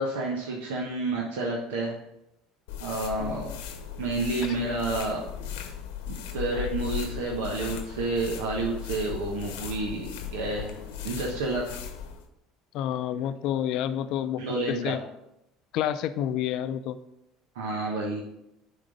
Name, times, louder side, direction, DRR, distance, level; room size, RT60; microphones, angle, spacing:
voice 1, 0.0-2.0 2.8-3.6 4.0-5.3 6.1-10.8 11.0-11.8 14.4-15.0 17.5-18.2, right 2 dB, 85° right, -2 dB, 1.1 m, -30 dB
sound 1, 2.7-12.2, left 9 dB, 85° left, 0.9 m, -37 dB
voice 2, 3.2-3.6 4.5-4.6 6.5-6.7 12.7-14.4 14.7-15.0 15.7-17.0, left 10 dB, 65° left, 11 dB, 0.5 m, -29 dB
10.0 x 3.8 x 5.1 m, 0.85 s
supercardioid pair, 85°, 0 cm